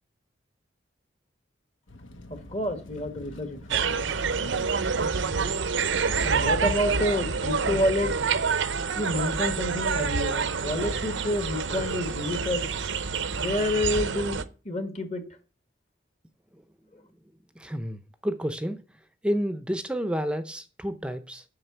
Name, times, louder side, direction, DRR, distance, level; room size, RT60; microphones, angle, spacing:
sound 1, 1.9-8.4, left 1 dB, 85° left, 1.2 m, -45 dB
voice 1, 2.3-3.8 6.2-8.1 9.0-12.7 13.3-15.2, left 1 dB, 35° left, 1.6 m, -29 dB
sound 2, 3.7-14.4, right 5 dB, 75° right, 0.7 m, -27 dB
voice 2, 17.6-18.8 19.2-21.4, equal, 5° right, 0.6 m, -30 dB
7.7 x 6.4 x 8.0 m
head